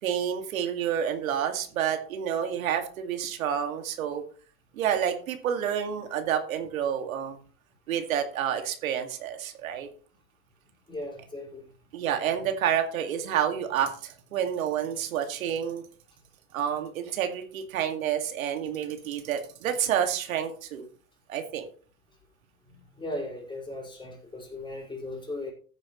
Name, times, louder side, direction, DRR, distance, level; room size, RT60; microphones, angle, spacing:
voice 1, 0.0-4.2 4.7-7.4 7.9-9.9 11.9-15.8 16.5-20.9 21.3-21.7, right 9 dB, 90° right, 5 dB, 2.3 m, -29 dB
voice 2, 10.9-11.7 22.7-25.5, left 1 dB, 10° left, -2 dB, 5.2 m, -37 dB
15.0 x 9.7 x 3.2 m, 0.41 s
supercardioid pair, 125°, 40 cm